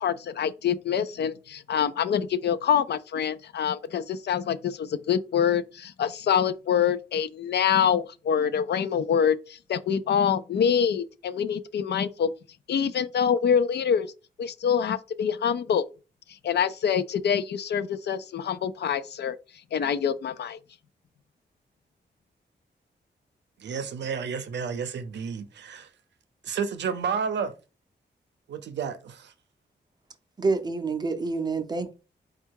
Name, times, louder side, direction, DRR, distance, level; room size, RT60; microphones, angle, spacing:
voice 1, 0.0-12.3 12.7-14.1 14.4-15.8 16.4-19.4 19.7-20.6, left 8 dB, 70° left, 0.4 m, -25 dB
voice 2, 23.6-25.9 26.4-27.6 28.5-29.3, right 6 dB, 80° right, 0.6 m, -31 dB
voice 3, 30.4-32.0, right 3 dB, 25° right, 0.5 m, -27 dB
4.4 x 2.3 x 4.5 m
wide cardioid pair, 145°, 18 cm